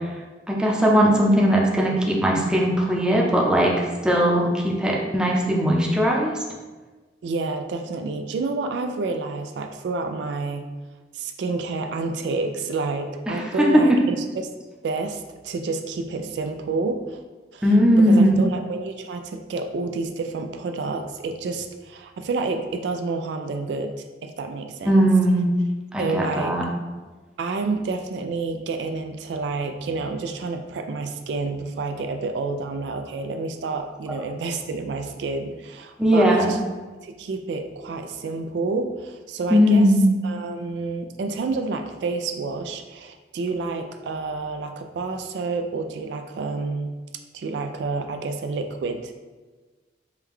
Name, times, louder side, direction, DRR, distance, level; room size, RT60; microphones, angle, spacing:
voice 1, 0.5-6.4 13.3-14.0 17.6-18.3 24.8-25.5 25.9-26.6 36.0-36.5 39.5-40.1, equal, 5° right, -3 dB, 0.6 m, -19 dB
voice 2, 7.2-10.7 11.1-14.5 14.8-17.2 17.5-23.9 24.2-25.0 26.0-26.6 27.4-36.6 36.9-39.9 40.2-46.9 47.3-49.2, right 3 dB, 70° right, 6 dB, 0.3 m, -29 dB
4.7 x 2.2 x 3.5 m, 1.3 s
head